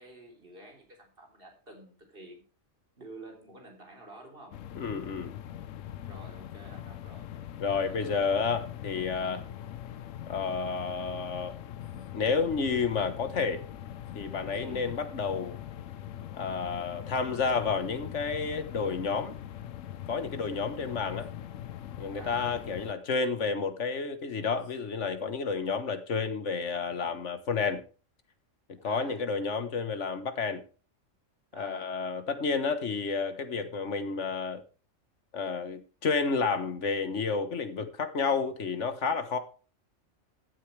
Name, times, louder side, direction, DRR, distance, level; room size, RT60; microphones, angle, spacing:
voice 1, 0.0-2.4 3.0-4.6 6.0-7.3 7.8-8.5 9.2-9.6 12.0-12.1 14.5-14.9 22.1-22.5 28.8-29.2 31.5-31.9, right 2 dB, 45° right, 3.9 m, -50 dB
sound 1, 4.5-22.9, left 11 dB, 85° left, 1.1 m, -42 dB
voice 2, 4.7-5.3 7.6-9.4 10.3-11.6 12.1-13.6 14.1-15.6 16.3-19.3 20.1-21.3 22.0-27.8 28.7-30.6 31.6-34.6 35.3-39.4, left 5 dB, 65° left, 1.6 m, -30 dB
15.5 x 8.3 x 3.3 m
omnidirectional pair, 1.3 m